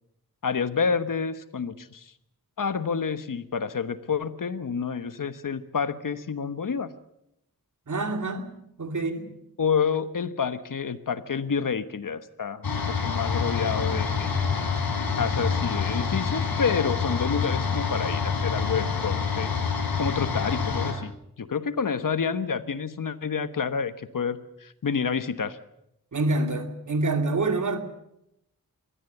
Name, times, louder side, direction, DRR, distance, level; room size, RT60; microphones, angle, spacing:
voice 1, 0.4-2.1 2.6-6.9 9.6-14.3 15.0-19.5 20.0-21.1 21.4-25.6, left 6 dB, 65° left, 12 dB, 1.3 m, -29 dB
voice 2, 7.9-9.4 26.1-27.8, right 2 dB, 55° right, 6 dB, 2.5 m, -27 dB
sound 1, 12.6-20.9, left 5 dB, 90° left, 4.0 m, -27 dB
23.0 x 17.0 x 8.0 m, 0.81 s
wide cardioid pair, 110°, 35 cm